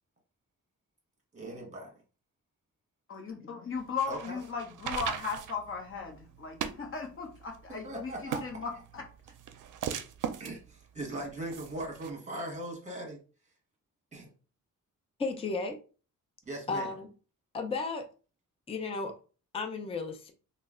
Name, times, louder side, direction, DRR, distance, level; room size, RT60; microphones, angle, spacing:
voice 1, 1.3-2.0 4.1-4.4 7.8-8.6 10.4-13.2 14.1-14.3 16.4-16.9, right 1 dB, 20° right, 1.2 m, -39 dB
voice 2, 3.1-9.0, left 5 dB, 40° left, 0.9 m, -37 dB
sound 1, 3.8-12.1, right 8 dB, 75° right, 0.5 m, -40 dB
voice 3, 15.2-15.8 16.7-17.1 17.5-18.0 18.7-19.1 19.5-20.3, left 4 dB, 20° left, 0.4 m, -33 dB
3.1 x 2.1 x 3.6 m
wide cardioid pair, 145°, 31 cm